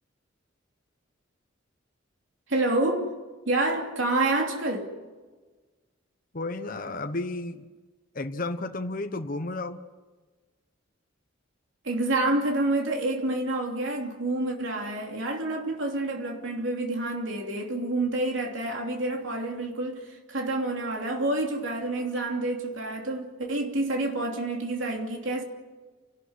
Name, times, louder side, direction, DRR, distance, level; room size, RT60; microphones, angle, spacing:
voice 1, 2.5-3.1 3.5-4.9 11.8-25.4, right 2 dB, 70° right, 3.0 m, -28 dB
voice 2, 6.3-7.7 8.1-9.8, left 2 dB, 45° left, 1.0 m, -32 dB
29.5 x 13.0 x 9.6 m
head